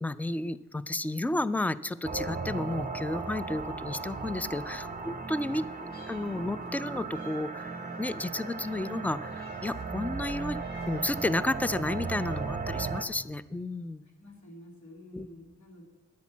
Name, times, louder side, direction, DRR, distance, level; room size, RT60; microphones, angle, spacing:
voice 1, 0.0-7.7 8.0-10.6 10.9-14.0 15.1-15.3, left 2 dB, 5° left, 16 dB, 0.3 m, -32 dB
sound 1, 2.0-13.0, right 4 dB, 30° right, 0.9 m, -36 dB
voice 2, 4.1-4.4 14.2-15.8, left 1 dB, 65° left, 0 dB, 2.5 m, -50 dB
Meow, 5.4-6.8 7.1-9.9 10.3-11.3 11.8-12.6, left 2 dB, 30° left, 2.8 m, -58 dB
10.5 x 8.1 x 7.3 m, 1.1 s
wide cardioid pair, 90°, 31 cm